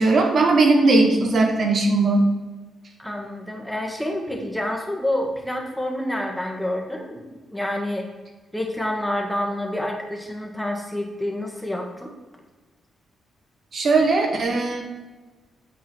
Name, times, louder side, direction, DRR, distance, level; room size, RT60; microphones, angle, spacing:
voice 1, 0.0-2.2 13.7-14.8, right 3 dB, 55° right, 3 dB, 1.5 m, -18 dB
voice 2, 3.0-8.0 8.5-12.1, left 1 dB, 5° left, 1 dB, 1.7 m, -28 dB
8.9 x 4.0 x 4.5 m, 1.2 s
supercardioid pair, 55°, 0 cm